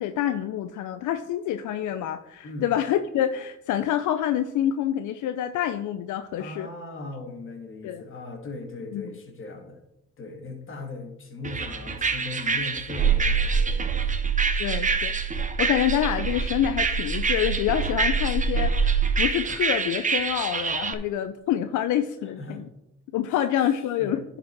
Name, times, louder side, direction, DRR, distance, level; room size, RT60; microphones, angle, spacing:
voice 1, 0.0-6.7 7.8-8.0 8.9-9.1 14.6-22.7 23.1-24.2, left 11 dB, 80° left, 10 dB, 0.5 m, -27 dB
voice 2, 2.4-2.7 6.4-9.8 10.2-14.1 22.2-22.6 23.3-23.4 24.0-24.2, left 3 dB, 45° left, 1 dB, 2.3 m, -38 dB
sound 1, 11.4-20.9, right 4 dB, 25° right, 0.8 m, -28 dB
sound 2, 13.0-19.2, right 6 dB, 80° right, 1.4 m, -26 dB
10.0 x 5.0 x 4.6 m, 0.85 s
cardioid pair, 90°, 30 cm